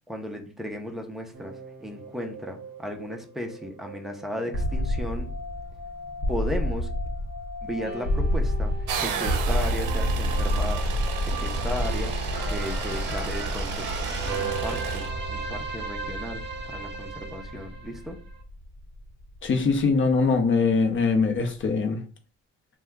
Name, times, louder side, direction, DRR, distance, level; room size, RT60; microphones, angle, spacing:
voice 1, 0.1-1.5 1.8-5.3 6.3-6.9 7.6-8.7 9.0-10.9 11.2-12.1 12.4-13.7 14.3-18.2, equal, ahead, 3 dB, 0.5 m, -35 dB
sound 1, 1.3-18.4, right 3 dB, 35° right, 0.8 m, -37 dB
sound 2, 4.5-20.4, equal, 65° left, 1.0 m, -29 dB
sound 3, 8.9-15.1, right 7 dB, 70° right, 0.6 m, -34 dB
voice 2, 19.4-22.0, left 4 dB, 35° left, 5 dB, 0.7 m, -22 dB
2.8 x 2.2 x 3.5 m, 0.36 s
cardioid pair, 120°, 33 cm